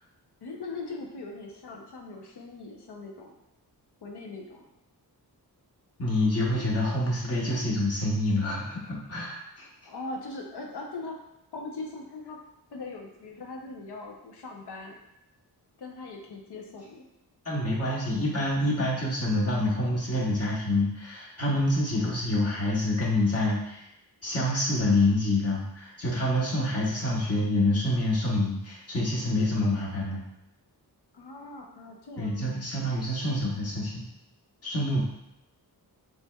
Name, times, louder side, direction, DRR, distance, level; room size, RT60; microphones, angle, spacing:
voice 1, 0.4-3.3 4.0-4.7 9.9-11.2 11.5-12.4 12.7-15.0 15.8-17.1 31.1-32.6, left 3 dB, 80° left, 0 dB, 0.8 m, -40 dB
voice 2, 6.0-9.7 17.4-23.9 24.2-30.2 32.2-34.0 34.6-35.0, left 1 dB, 35° left, -5 dB, 1.2 m, -27 dB
7.0 x 3.2 x 2.3 m, 0.83 s
wide cardioid pair, 170°, 39 cm